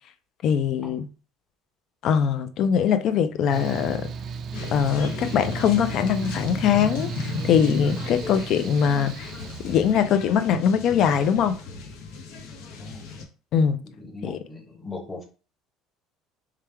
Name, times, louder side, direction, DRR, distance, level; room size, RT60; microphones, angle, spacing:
voice 1, 0.4-1.1 2.0-4.1 4.7-9.3 9.6-11.5 13.5-13.8 14.2-14.4, left 8 dB, 45° left, 0.4 m, -22 dB
Mechanical fan, 3.5-9.9, right 5 dB, 40° right, 0.4 m, -35 dB
sound 1, 4.5-13.2, left 4 dB, 70° left, 0.9 m, -36 dB
voice 2, 13.8-15.2, left 3 dB, 15° left, 1.0 m, -39 dB
3.4 x 3.3 x 3.4 m
cardioid pair, 155°, 0 cm